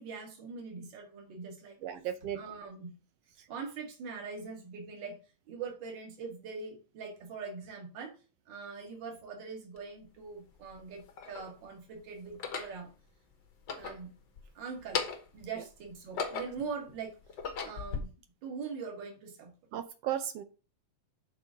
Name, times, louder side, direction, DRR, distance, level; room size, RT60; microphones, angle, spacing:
voice 1, 0.0-1.8 2.3-2.9 3.5-5.2 5.5-8.1 8.5-12.9 13.8-14.1 14.5-15.0 15.3-17.2 17.6-18.1 18.4-19.5, right 5 dB, 40° right, 0 dB, 2.5 m, -42 dB
voice 2, 1.8-2.4 19.7-20.4, right 10 dB, 75° right, 10 dB, 1.5 m, -35 dB
sound 1, 9.8-9.9 10.7-11.5 12.3-12.8 13.5-14.5 14.8-15.4 15.9-16.7 17.2-18.0, left 5 dB, 55° left, 1.3 m, -37 dB
7.1 x 4.3 x 6.5 m, 0.34 s
omnidirectional pair, 3.4 m